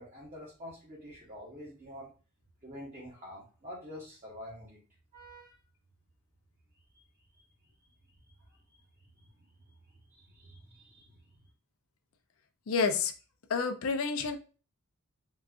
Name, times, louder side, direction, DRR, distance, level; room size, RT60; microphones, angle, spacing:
voice 1, 0.0-2.1 2.6-4.8 5.1-5.6 6.9-7.0 7.3-7.4 9.2-9.3 10.1-11.1, equal, 35° right, -6 dB, 0.9 m, -47 dB
voice 2, 12.7-13.1 13.5-14.4, left 5 dB, 65° left, 9 dB, 0.4 m, -29 dB
3.8 x 2.4 x 2.3 m, 0.35 s
head